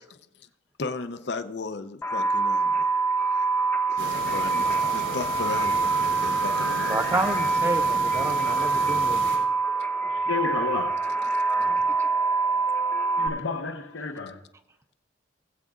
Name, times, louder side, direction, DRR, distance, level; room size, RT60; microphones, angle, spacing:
voice 1, 0.8-2.9 3.9-7.3, left 3 dB, 60° left, 0.6 m, -35 dB
sound 1, 2.0-13.3, right 4 dB, 15° left, 0.9 m, -25 dB
sound 2, 4.0-9.4, right 2 dB, 90° right, 3.1 m, -36 dB
voice 2, 6.9-9.2, right 2 dB, 15° right, 0.5 m, -29 dB
voice 3, 10.0-11.0 11.5-11.9 13.2-14.4, left 4 dB, 90° left, 1.1 m, -32 dB
19.5 x 8.0 x 2.4 m
head